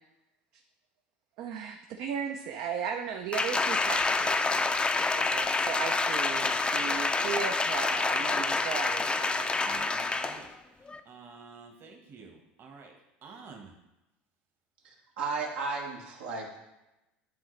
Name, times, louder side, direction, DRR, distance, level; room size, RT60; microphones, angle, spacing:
voice 1, 1.4-4.5 5.2-9.9, right 7 dB, 60° right, 4 dB, 0.6 m, -36 dB
Applause, 3.3-10.5 10.9-11.0, left 3 dB, 15° left, 0.5 m, -28 dB
voice 2, 9.6-10.5 11.0-12.9 13.2-13.8, right 5 dB, 40° right, 3 dB, 1.4 m, -49 dB
voice 3, 14.8-16.6, right 4 dB, 80° right, -1 dB, 1.5 m, -34 dB
10.5 x 3.8 x 3.2 m, 0.95 s
hypercardioid pair, 80°, 6 cm